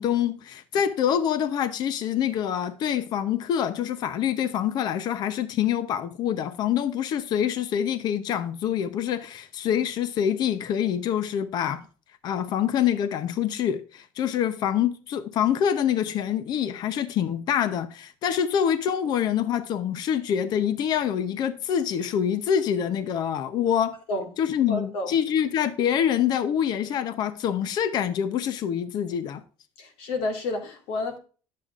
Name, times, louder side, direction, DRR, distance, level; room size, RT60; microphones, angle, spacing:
voice 1, 0.0-11.8 12.2-24.0 24.4-29.4, left 9 dB, 45° left, 0.7 m, -26 dB
voice 2, 24.7-25.1 29.8-31.2, left 2 dB, 75° left, 2.2 m, -30 dB
10.5 x 7.6 x 2.4 m
cardioid pair, 155°, 10 cm